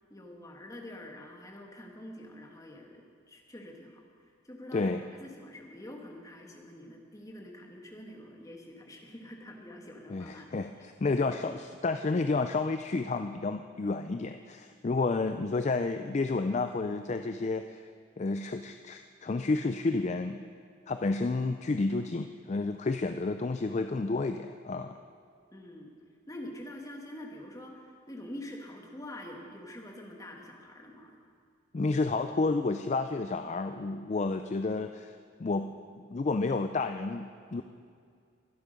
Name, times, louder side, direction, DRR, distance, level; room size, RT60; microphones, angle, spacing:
voice 1, 0.1-10.8 11.5-11.6 25.5-25.9 26.3-31.2, left 1 dB, 15° left, 1 dB, 1.5 m, -46 dB
voice 2, 4.7-5.0 10.1-17.8 18.2-20.4 20.9-25.0 31.7-35.1 35.4-35.7 36.0-37.6, left 3 dB, 35° left, 8 dB, 0.4 m, -30 dB
23.5 x 8.3 x 5.2 m, 2.2 s
head